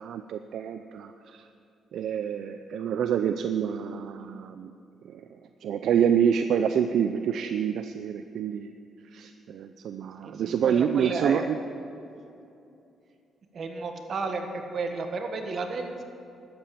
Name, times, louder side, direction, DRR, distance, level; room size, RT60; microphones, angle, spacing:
voice 1, 0.0-1.5 1.9-4.7 5.1-5.2 5.6-8.7 9.1-11.6, right 8 dB, 75° right, 8 dB, 0.5 m, -27 dB
voice 2, 10.2-11.5 13.5-16.0, right 4 dB, 55° right, 4 dB, 1.5 m, -32 dB
12.5 x 8.9 x 6.9 m, 2.7 s
cardioid pair, 90°, 0 cm